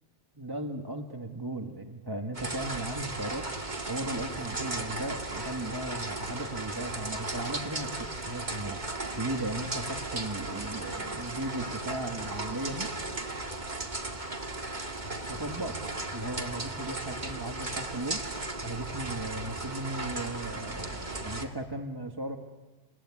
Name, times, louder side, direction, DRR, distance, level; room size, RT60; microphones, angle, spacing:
voice 1, 0.4-3.5 3.9-8.8 9.2-12.9 15.3-15.8 16.1-22.4, right 1 dB, 20° right, 3 dB, 1.4 m, -36 dB
sound 1, 2.3-21.5, right 2 dB, 40° right, 2.3 m, -36 dB
30.0 x 17.5 x 9.6 m, 1.2 s
omnidirectional pair, 1.2 m